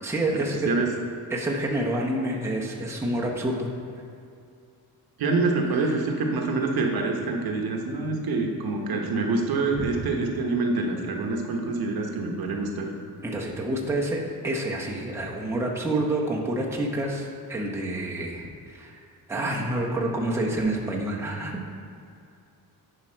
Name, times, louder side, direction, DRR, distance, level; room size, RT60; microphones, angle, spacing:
voice 1, 0.0-0.6 1.3-3.7 9.8-9.9 13.2-18.9 19.3-21.6, right 1 dB, 5° right, -3 dB, 0.9 m, -28 dB
voice 2, 5.2-12.9, right 3 dB, 65° right, 2 dB, 1.1 m, -26 dB
10.0 x 4.9 x 4.4 m, 2.5 s
cardioid pair, 135°, 39 cm